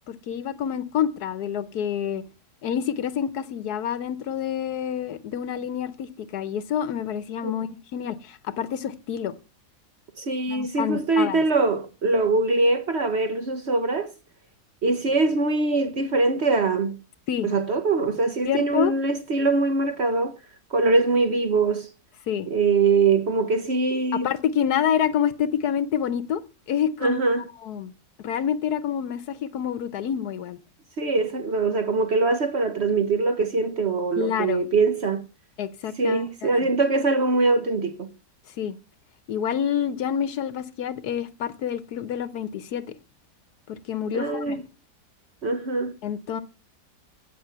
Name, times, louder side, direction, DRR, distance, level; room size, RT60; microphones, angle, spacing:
voice 1, 0.1-2.2 2.6-9.3 10.5-11.4 17.3-17.5 18.5-18.9 22.3-22.5 24.1-26.4 26.7-27.2 27.6-27.9 28.2-30.6 34.2-34.6 35.6-36.5 38.6-38.8 39.3-42.8 43.7-44.6 46.0-46.4, left 9 dB, 70° left, 1.4 m, -27 dB
voice 2, 10.2-14.1 14.8-17.0 17.4-20.3 20.7-21.9 22.5-24.3 27.0-27.4 31.0-35.3 36.0-38.1 44.1-44.6 45.4-45.9, right 3 dB, 45° right, 1.0 m, -23 dB
16.0 x 6.1 x 7.8 m
omnidirectional pair, 1.8 m